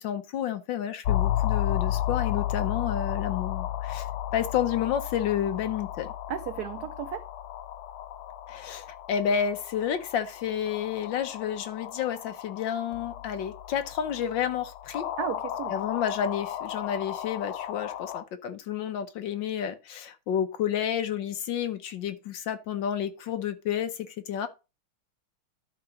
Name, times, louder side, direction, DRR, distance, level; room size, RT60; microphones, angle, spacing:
voice 1, 0.0-4.1 4.3-6.1 8.5-15.1 15.7-24.5, left 9 dB, 65° left, 1.4 m, -30 dB
sound 1, 1.1-18.2, left 12 dB, 80° left, 1.6 m, -33 dB
voice 2, 6.3-7.2 15.2-15.7, right 10 dB, 80° right, 0.8 m, -34 dB
11.0 x 4.1 x 5.0 m
omnidirectional pair, 2.3 m